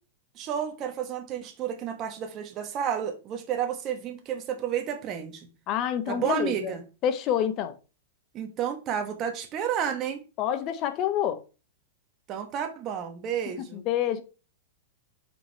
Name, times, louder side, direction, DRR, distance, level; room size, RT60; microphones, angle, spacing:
voice 1, 0.3-5.5 6.1-6.8 8.3-10.2 12.3-13.8, right 9 dB, 30° right, 1.3 m, -31 dB
voice 2, 5.7-6.7 7.0-7.7 10.4-11.4 13.6-14.2, left 10 dB, 35° left, 0.8 m, -27 dB
5.4 x 4.8 x 4.5 m
hypercardioid pair, 140°, 0 cm